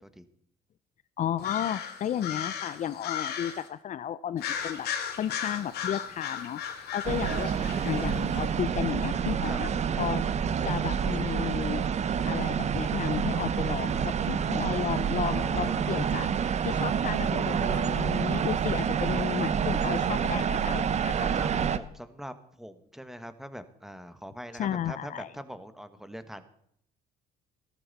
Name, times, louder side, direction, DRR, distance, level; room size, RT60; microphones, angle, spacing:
voice 1, 1.2-4.9 5.2-6.6 6.9-7.5 7.8-9.7 10.0-10.2 10.6-11.8 12.2-21.3 24.6-25.3, left 10 dB, 45° left, 16 dB, 0.6 m, -33 dB
sound 1, 1.4-3.7 4.4-8.4, left 8 dB, 75° left, 2.6 m, -36 dB
sound 2, 7.0-21.8, right 7 dB, 40° right, 0.9 m, -28 dB
voice 2, 15.2-16.2 21.3-26.4, equal, ahead, 11 dB, 1.4 m, -42 dB
15.5 x 13.5 x 4.1 m, 0.71 s
cardioid pair, 110°, 17 cm